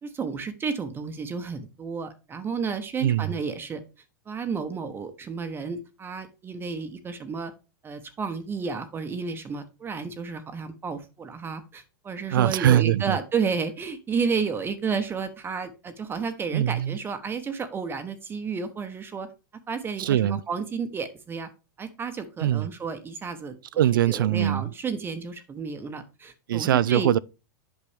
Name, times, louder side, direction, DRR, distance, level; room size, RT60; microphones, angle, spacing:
voice 1, 0.0-3.8 4.3-7.5 7.8-19.3 19.7-21.5 21.8-23.6 24.1-27.1, right 5 dB, 20° right, 0.9 m, -31 dB
voice 2, 3.0-3.4 12.3-13.2 16.5-17.0 20.0-20.4 22.4-22.7 23.8-24.7 26.5-27.2, right 11 dB, 90° right, 0.4 m, -22 dB
8.4 x 5.9 x 3.3 m
hypercardioid pair, 125°, 11 cm